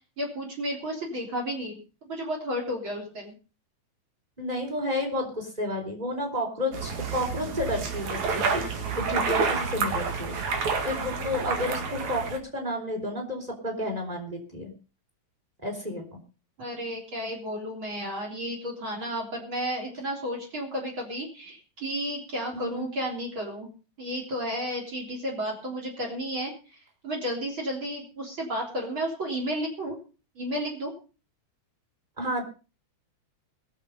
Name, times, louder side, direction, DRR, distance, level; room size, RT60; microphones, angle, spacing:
voice 1, 0.0-1.8 2.1-3.3 16.6-23.7 24.0-26.5 27.0-30.0 30.4-30.9, equal, 40° right, 1 dB, 4.3 m, -32 dB
voice 2, 4.4-8.6 9.0-10.4 10.8-14.7 15.6-16.2 22.6-22.9 32.2-32.4, left 1 dB, 10° right, 1 dB, 4.2 m, -31 dB
sound 1, 6.7-12.4, right 5 dB, 75° right, 3.3 m, -29 dB
21.0 x 7.5 x 5.5 m, 0.36 s
omnidirectional pair, 3.3 m